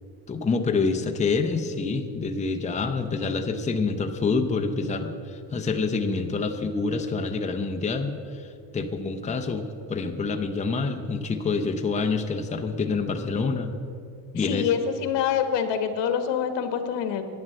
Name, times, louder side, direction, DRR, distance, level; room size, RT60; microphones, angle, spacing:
voice 1, 0.3-13.7 14.3-14.7, left 4 dB, 15° left, 4 dB, 0.7 m, -27 dB
voice 2, 14.4-17.2, left 8 dB, 80° left, 8 dB, 1.4 m, -26 dB
11.0 x 9.5 x 7.7 m, 2.4 s
cardioid pair, 140°, 43 cm